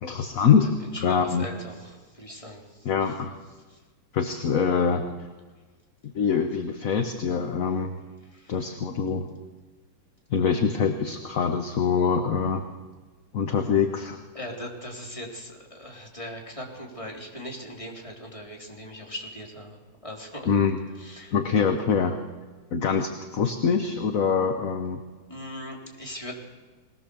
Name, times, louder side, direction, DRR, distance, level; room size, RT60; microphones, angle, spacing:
voice 1, 0.0-0.7 1.0-1.4 2.8-3.4 4.1-5.0 6.1-8.0 8.5-9.3 10.3-12.7 13.3-14.2 20.5-20.8 21.3-22.2 22.7-25.0, left 6 dB, 50° left, 6 dB, 1.3 m, -24 dB
voice 2, 0.8-3.1 3.7-3.8 8.2-8.8 14.3-20.5 21.0-21.4 25.3-26.4, left 1 dB, 15° left, -1 dB, 3.6 m, -40 dB
22.0 x 18.5 x 7.0 m, 1.3 s
omnidirectional pair, 2.2 m